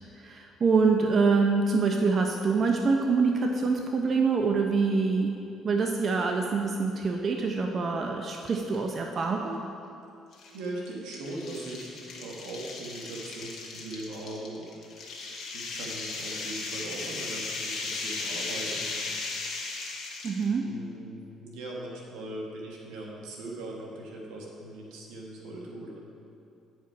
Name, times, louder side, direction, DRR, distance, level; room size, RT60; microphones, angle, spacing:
voice 1, 0.2-5.4 5.6-9.6 20.2-20.7, right 4 dB, 45° right, 2 dB, 0.5 m, -25 dB
sound 1, 8.4-8.8 9.2-9.3 10.3-20.5, left 3 dB, 60° left, 1.2 m, -36 dB
voice 2, 10.5-19.8 20.6-26.1, right 2 dB, 90° right, -2 dB, 1.3 m, -40 dB
9.0 x 4.8 x 4.6 m, 2.6 s
cardioid pair, 90°, 0 cm